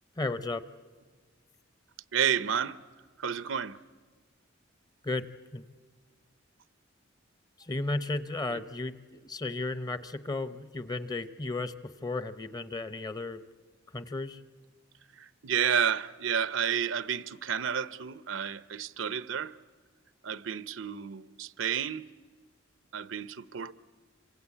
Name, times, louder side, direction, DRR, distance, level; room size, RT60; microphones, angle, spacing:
voice 1, 0.2-0.6 5.0-5.3 5.5-5.6 7.6-13.4 13.9-14.4, left 2 dB, 20° left, 0.7 m, -34 dB
voice 2, 2.1-2.8 3.2-3.8 8.5-8.6 15.1-19.6 20.2-22.1 22.9-23.7, right 8 dB, 85° right, 0.7 m, -31 dB
27.5 x 25.5 x 8.5 m
head